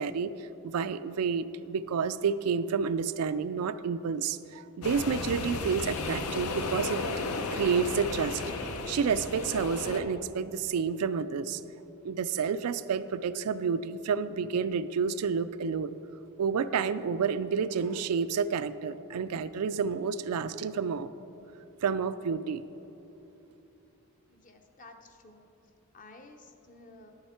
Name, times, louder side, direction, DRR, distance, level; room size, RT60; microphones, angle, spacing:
voice 1, 0.0-7.0 7.5-11.6 12.0-16.0 16.4-21.1 21.8-22.7, right 6 dB, 85° right, 13 dB, 0.4 m, -30 dB
sound 1, 4.8-10.0, left 3 dB, 75° left, 0.7 m, -34 dB
voice 2, 24.3-25.5 25.9-27.1, left 2 dB, 35° left, 5 dB, 0.7 m, -52 dB
11.0 x 8.8 x 4.3 m, 2.9 s
head